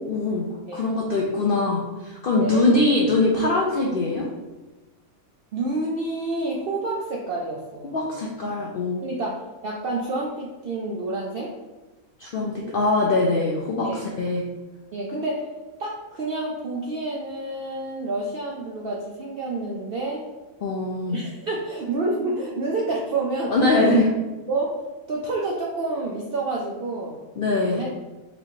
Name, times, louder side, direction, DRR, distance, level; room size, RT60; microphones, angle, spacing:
voice 1, 0.1-4.3 7.9-9.0 12.2-14.4 20.6-21.2 23.5-24.1 27.4-27.8, left 2 dB, 85° left, -2 dB, 0.4 m, -22 dB
voice 2, 2.4-2.7 5.5-8.0 9.0-11.5 13.8-14.0 14.9-15.5 15.8-20.2 21.1-23.6 23.8-24.0 24.5-24.7 25.1-27.2 27.6-27.9, right 2 dB, 80° right, -2 dB, 0.5 m, -28 dB
4.2 x 3.0 x 2.7 m, 1.1 s
omnidirectional pair, 1.6 m